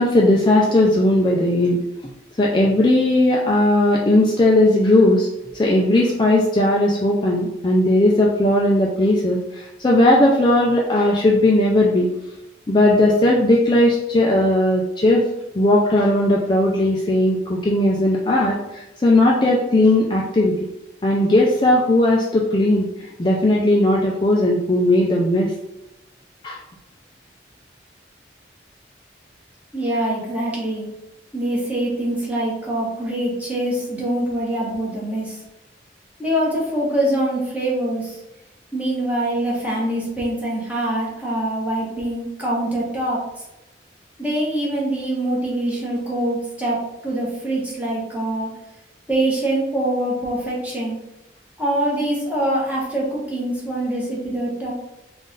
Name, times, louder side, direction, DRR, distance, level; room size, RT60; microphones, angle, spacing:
voice 1, 0.0-1.8 2.4-5.3 5.5-12.1 12.7-15.3 15.5-20.5 21.0-22.9 23.2-25.5 26.4-26.6, left 1 dB, 25° left, -3 dB, 0.4 m, -17 dB
voice 2, 29.7-30.9 31.3-35.4 36.2-38.2 38.7-43.4 44.2-46.8 47.0-48.5 49.1-51.0 51.6-54.7, right 1 dB, 10° right, -6 dB, 1.1 m, -24 dB
3.8 x 2.5 x 3.8 m, 0.93 s
head